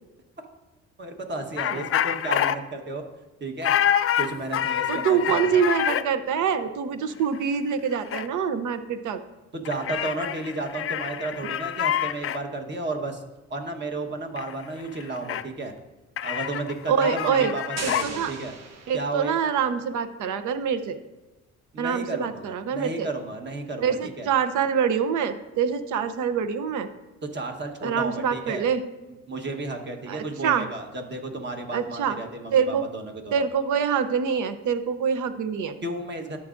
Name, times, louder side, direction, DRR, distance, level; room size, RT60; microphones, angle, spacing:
voice 1, 1.0-3.0 3.4-3.7 4.2-5.6 9.5-13.2 13.5-15.7 16.2-18.5 18.9-19.4 21.7-24.3 27.3-28.7 29.3-33.3 35.8-36.4, right 2 dB, 35° right, 3 dB, 1.2 m, -33 dB
sound 1, 1.6-2.6 3.6-6.0 7.3-7.4 7.7-8.3 9.6-12.4 14.4-14.5 14.8-15.4 16.2-18.1, left 10 dB, 50° left, 0.4 m, -27 dB
voice 2, 4.9-9.2 16.9-17.5 17.8-18.3 18.9-21.0 21.8-23.1 23.8-26.9 27.8-28.8 30.1-30.7 31.7-32.2 32.5-32.9 33.3-35.7, right 7 dB, 80° right, 11 dB, 0.7 m, -25 dB
sound 2, 17.8-19.6, right 5 dB, 60° right, 1.1 m, -38 dB
13.0 x 6.2 x 2.6 m, 1.1 s
cardioid pair, 90°, 30 cm